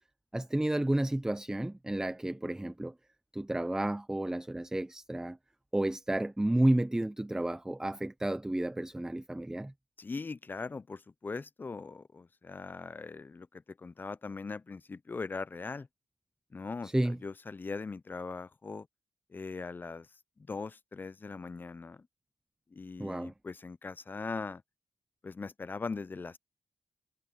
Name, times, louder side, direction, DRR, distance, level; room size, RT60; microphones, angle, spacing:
voice 1, 0.3-2.9 3.3-5.4 5.7-9.7 16.8-17.2 23.0-23.3, right 1 dB, 10° right, 0.8 m, -31 dB
voice 2, 10.0-15.9 16.5-18.9 19.3-20.1 20.4-22.1 22.7-24.6 25.2-26.4, left 4 dB, 30° left, 0.6 m, -40 dB
cardioid pair, 80°, 6 cm